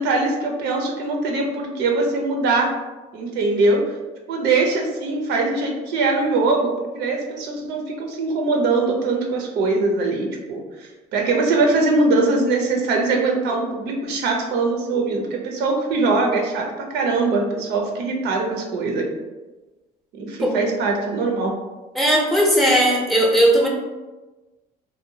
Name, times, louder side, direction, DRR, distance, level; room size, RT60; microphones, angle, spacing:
voice 1, 0.0-2.7 3.1-3.8 4.3-16.6 16.9-19.1 20.2-21.5, right 3 dB, 80° right, 1 dB, 0.6 m, -22 dB
voice 2, 22.0-23.7, equal, ahead, -2 dB, 0.5 m, -17 dB
2.7 x 2.2 x 2.7 m, 1.2 s
cardioid pair, 110°, 17 cm